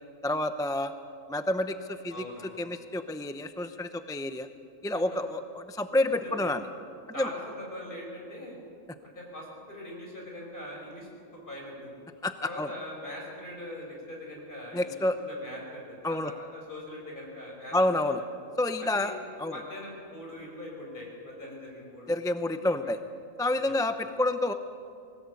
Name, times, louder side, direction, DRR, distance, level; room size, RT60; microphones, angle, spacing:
voice 1, 0.2-0.9 1.3-2.2 2.6-4.5 4.8-6.6 7.2-7.3 12.2-12.7 14.7-15.2 16.0-16.3 17.7-18.2 18.6-19.1 19.4-19.6 22.1-23.0 23.4-24.5, left 1 dB, 5° left, 9 dB, 0.4 m, -28 dB
voice 2, 2.1-2.5 6.2-6.5 7.1-8.6 9.0-11.9 12.4-18.1 18.8-19.2 19.5-22.1 23.6-23.8, left 1 dB, 40° left, -2 dB, 5.9 m, -42 dB
21.0 x 18.5 x 8.4 m, 2.5 s
omnidirectional pair, 1.4 m